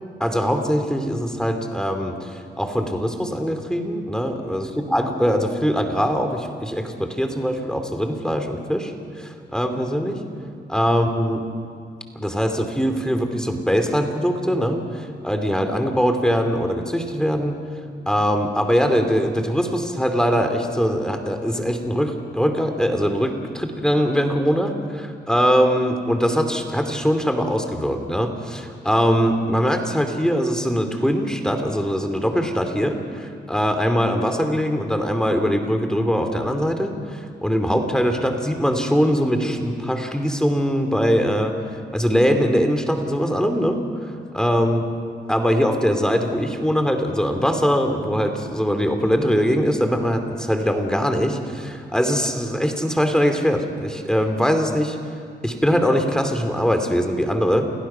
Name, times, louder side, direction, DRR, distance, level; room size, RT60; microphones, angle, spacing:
voice 1, 0.2-8.9 9.2-10.2 10.7-11.4 12.2-17.6 18.1-41.6 41.9-44.8 45.3-55.0 55.4-57.7, equal, 5° left, 5 dB, 2.8 m, -22 dB
29.0 x 18.0 x 5.8 m, 2.3 s
cardioid pair, 70°, 19 cm